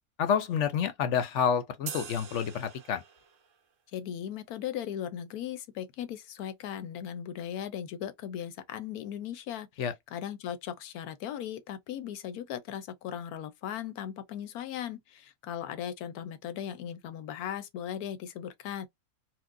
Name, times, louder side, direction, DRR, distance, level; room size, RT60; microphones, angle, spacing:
voice 1, 0.2-3.0 9.8-9.9, left 7 dB, 65° left, 0.8 m, -28 dB
sound 1, 1.9-3.5, right 7 dB, 65° right, 1.1 m, -43 dB
voice 2, 3.9-18.9, left 10 dB, 90° left, 1.2 m, -38 dB
4.4 x 2.1 x 2.5 m
omnidirectional pair, 1.5 m